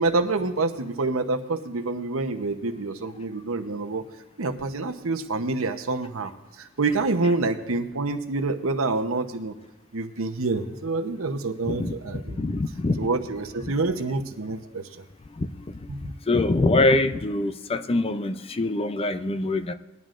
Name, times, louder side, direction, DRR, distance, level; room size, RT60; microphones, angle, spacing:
voice 1, 0.0-4.0 4.4-6.3 6.6-9.5 9.9-12.4 13.0-14.9 15.9-16.1, right 3 dB, 80° right, 6 dB, 0.9 m, -27 dB
voice 2, 11.6-13.1 13.7-13.8 15.4-15.8 16.3-19.7, left 2 dB, 30° left, 11 dB, 0.5 m, -24 dB
20.0 x 11.0 x 2.5 m, 1.1 s
head